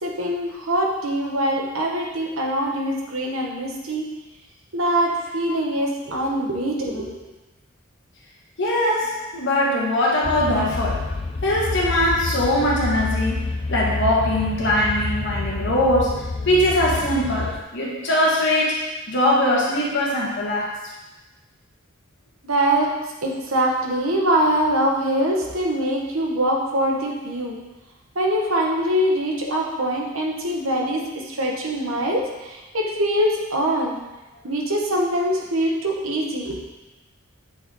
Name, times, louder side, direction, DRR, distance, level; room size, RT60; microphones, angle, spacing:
voice 1, 0.0-4.1 4.7-7.2 22.4-22.9 23.2-27.6 28.1-34.0 34.4-36.6, right 1 dB, 85° right, -1 dB, 1.3 m, -23 dB
voice 2, 8.6-11.0 11.4-18.8 19.1-20.7, left 1 dB, 60° left, -4 dB, 1.6 m, -21 dB
sound 1, 10.2-17.6, left 3 dB, 25° left, 0.4 m, -28 dB
8.1 x 4.1 x 3.8 m, 1.1 s
head